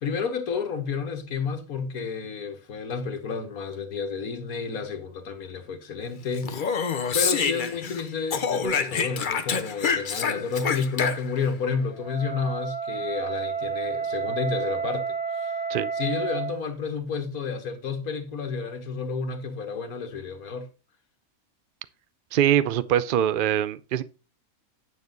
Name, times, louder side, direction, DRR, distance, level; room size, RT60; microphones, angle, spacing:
voice 1, 0.0-6.7 7.1-15.0 15.3-15.6 15.9-20.7, left 5 dB, 85° left, 1.8 m, -31 dB
Speech, 6.4-8.0 8.3-11.5, left 6 dB, 40° left, 0.9 m, -27 dB
Wind instrument woodwind instrument, 11.9-16.6, right 6 dB, 5° right, 0.7 m, -30 dB
voice 2, 22.3-24.0, right 10 dB, 55° right, 0.6 m, -23 dB
9.7 x 6.9 x 3.9 m
omnidirectional pair, 1.5 m